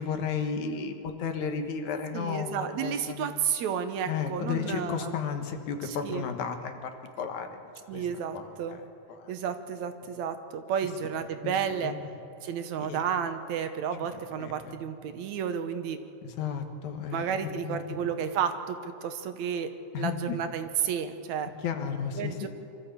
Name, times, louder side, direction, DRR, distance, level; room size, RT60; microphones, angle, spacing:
voice 1, 0.0-3.4 4.1-7.5 7.9-8.1 8.3-8.8 9.1-9.3 11.4-11.5 11.8-12.0 12.9-13.0 14.4-14.7 16.2-17.3 17.6-18.0 19.9-20.4 21.6-22.5, left 6 dB, 80° left, 6 dB, 2.7 m, -33 dB
voice 2, 2.1-5.1 5.8-6.3 7.9-8.8 9.3-12.0 12.4-16.0 17.1-21.5 22.2-22.5, right 7 dB, 75° right, 8 dB, 2.3 m, -32 dB
24.0 x 14.0 x 8.2 m, 2.8 s
omnidirectional pair, 3.3 m